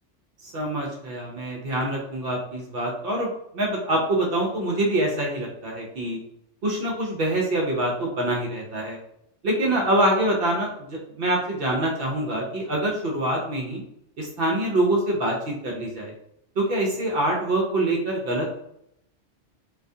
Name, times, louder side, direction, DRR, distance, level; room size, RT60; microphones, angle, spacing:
voice 1, 0.4-6.2 6.6-9.0 9.4-13.8 14.2-16.1 16.6-18.5, right 1 dB, 60° right, -1 dB, 0.7 m, -25 dB
2.3 x 2.3 x 2.6 m, 0.75 s
omnidirectional pair, 1.3 m